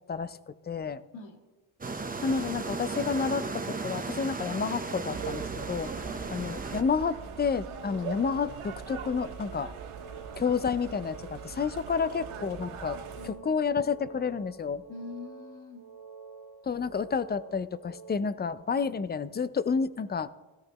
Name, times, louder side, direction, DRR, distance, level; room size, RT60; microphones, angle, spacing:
voice 1, 0.1-1.0 2.2-5.9 6.3-9.7 10.4-13.0 13.2-14.8 16.7-20.3, left 5 dB, 25° left, 15 dB, 0.4 m, -30 dB
sound 1, 1.8-6.8, right 4 dB, 20° right, 0.8 m, -35 dB
sound 2, 5.1-13.3, right 7 dB, 90° right, 1.4 m, -41 dB
voice 2, 6.0-6.3 12.9-13.5 14.9-15.9, left 3 dB, 70° left, 4 dB, 1.9 m, -45 dB
sound 3, 7.6-18.2, right 5 dB, 70° right, 1.8 m, -49 dB
16.5 x 14.0 x 2.9 m, 1.2 s
cardioid pair, 120°, 49 cm